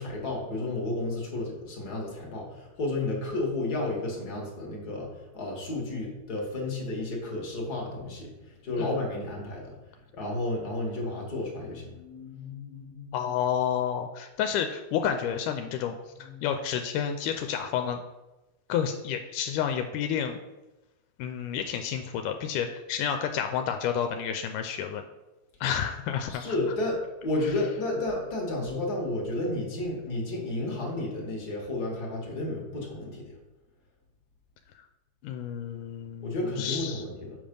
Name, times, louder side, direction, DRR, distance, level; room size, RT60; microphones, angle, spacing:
voice 1, 0.0-9.7 10.1-13.2 16.2-16.5 26.3-33.3 36.2-37.4, left 2 dB, 40° left, -1 dB, 1.5 m, -32 dB
voice 2, 13.1-18.0 18.7-20.4 21.2-25.0 25.6-26.6 35.2-37.0, left 8 dB, 85° left, 6 dB, 2.0 m, -30 dB
7.4 x 5.2 x 5.3 m, 1.1 s
omnidirectional pair, 3.7 m